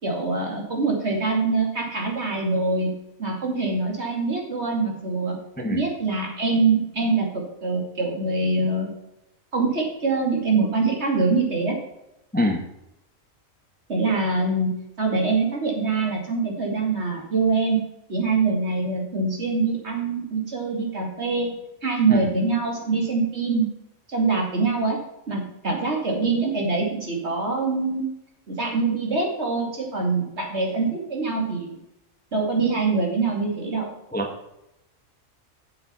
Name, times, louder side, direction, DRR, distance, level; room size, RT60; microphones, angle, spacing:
voice 1, 0.0-2.9 3.2-8.9 9.5-11.7 13.9-14.7 15.0-17.8 18.1-21.5 21.8-23.7 24.1-25.0 25.3-28.1 28.5-31.8 32.3-33.9, right 3 dB, 55° right, 0 dB, 2.7 m, -24 dB
voice 2, 5.6-5.8 12.3-12.6 22.1-22.2 34.1-34.3, left 1 dB, 10° left, 4 dB, 1.0 m, -24 dB
8.8 x 7.5 x 5.7 m, 0.87 s
omnidirectional pair, 1.4 m